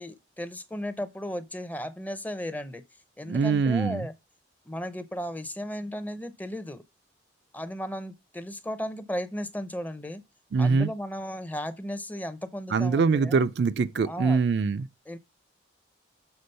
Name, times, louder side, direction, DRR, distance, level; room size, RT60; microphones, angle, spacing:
voice 1, 0.0-2.8 3.2-4.1 4.7-6.8 7.5-10.2 10.6-13.4 14.0-14.4 15.1-15.2, equal, 10° left, 0.5 m, -35 dB
voice 2, 3.2-4.1 10.5-10.9 12.7-14.9, right 4 dB, 60° right, 0.4 m, -23 dB
6.9 x 3.7 x 5.3 m
head